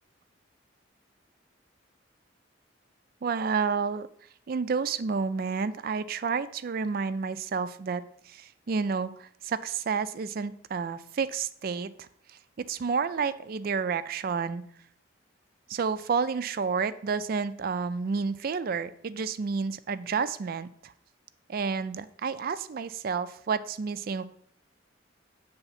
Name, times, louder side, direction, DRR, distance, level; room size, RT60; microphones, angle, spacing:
voice 1, 3.2-4.1 4.5-12.1 12.7-14.6 15.7-20.9 21.5-24.2, right 5 dB, 50° right, 14 dB, 0.4 m, -30 dB
8.0 x 3.5 x 5.7 m, 0.64 s
head